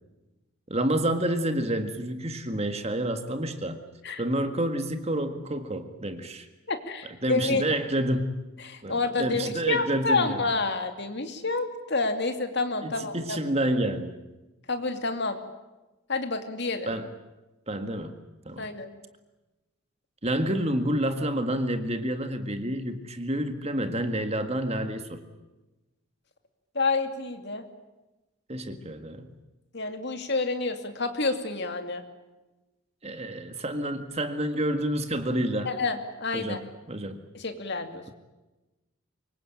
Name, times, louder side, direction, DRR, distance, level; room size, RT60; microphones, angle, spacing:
voice 1, 0.7-3.8 4.2-6.5 7.2-8.4 8.8-10.4 12.8-14.2 16.9-17.1 17.7-18.1 18.5-18.7 20.2-25.2 28.5-29.3 33.0-35.7 36.3-37.2, right 1 dB, 30° right, 8 dB, 1.8 m, -29 dB
voice 2, 6.7-7.6 8.6-13.4 14.7-15.4 16.1-16.9 18.6-18.9 26.7-27.6 29.7-32.0 35.7-36.6 37.3-38.1, left 3 dB, 50° left, 7 dB, 2.5 m, -29 dB
25.5 x 23.0 x 8.9 m, 1.1 s
head